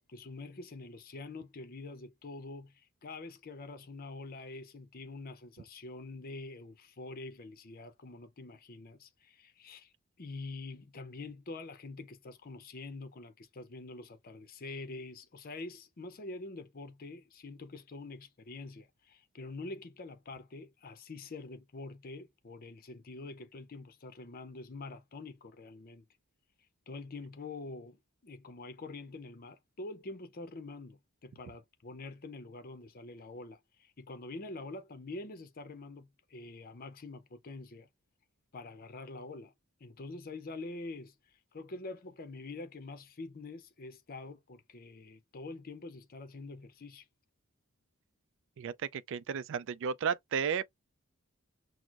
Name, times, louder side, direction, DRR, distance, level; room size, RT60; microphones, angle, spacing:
voice 1, 0.0-26.0 26.9-37.9 38.5-39.5 39.8-41.1 41.5-47.1, left 3 dB, 40° left, 0.6 m, -46 dB
voice 2, 48.6-50.6, right 6 dB, 60° right, 0.3 m, -33 dB
6.0 x 2.1 x 2.4 m
head